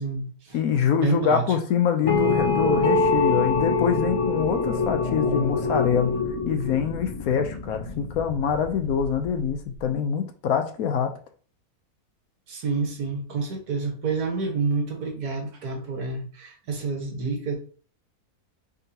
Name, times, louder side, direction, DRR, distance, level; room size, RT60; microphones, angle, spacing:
voice 1, 0.0-0.6 1.0-1.5 12.5-17.6, right 4 dB, 75° right, 1.7 m, -28 dB
voice 2, 0.5-6.1 6.5-11.1, left 7 dB, 70° left, 1.1 m, -25 dB
sound 1, 2.0-9.6, left 3 dB, 35° left, 0.6 m, -25 dB
4.5 x 3.9 x 2.8 m
omnidirectional pair, 1.7 m